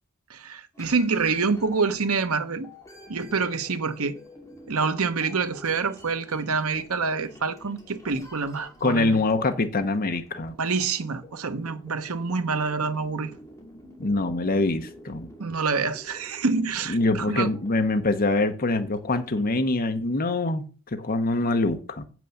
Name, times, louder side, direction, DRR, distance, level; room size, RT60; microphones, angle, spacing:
voice 1, 0.3-2.7 3.1-4.2 4.7-9.2 10.6-13.3 15.4-17.5, right 4 dB, 70° right, 1.0 m, -26 dB
sound 1, 0.7-19.6, equal, 15° left, 2.6 m, -49 dB
voice 2, 8.8-10.5 14.0-15.3 16.9-22.0, left 2 dB, 40° left, 0.9 m, -24 dB
7.6 x 6.1 x 7.0 m
head